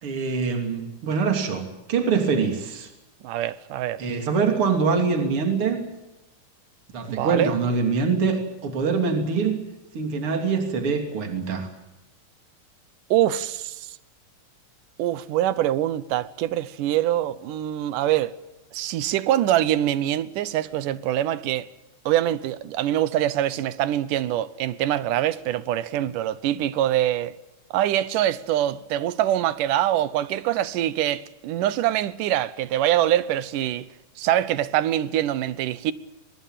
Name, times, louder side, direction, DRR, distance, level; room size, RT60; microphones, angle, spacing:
voice 1, 0.0-2.9 4.0-5.9 6.9-9.6 9.9-11.7, right 5 dB, 45° right, 3.7 m, -24 dB
voice 2, 3.2-4.0 7.1-7.5 13.1-13.9 15.0-18.3 18.7-21.7 22.1-27.3 27.7-33.9 34.2-35.9, right 12 dB, 80° right, 2.5 m, -24 dB
23.5 x 21.5 x 7.5 m
omnidirectional pair, 3.7 m